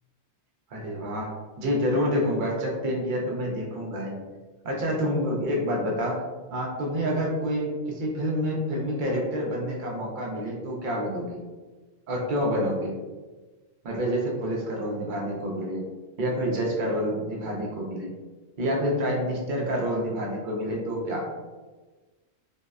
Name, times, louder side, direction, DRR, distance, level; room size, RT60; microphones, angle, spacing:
voice 1, 0.7-1.3 1.6-4.2 4.6-6.2 6.5-11.4 12.1-13.0 13.8-15.9 16.2-18.1 18.6-21.3, equal, 60° right, -2 dB, 0.5 m, -28 dB
2.6 x 2.0 x 2.3 m, 1.3 s
omnidirectional pair, 1.3 m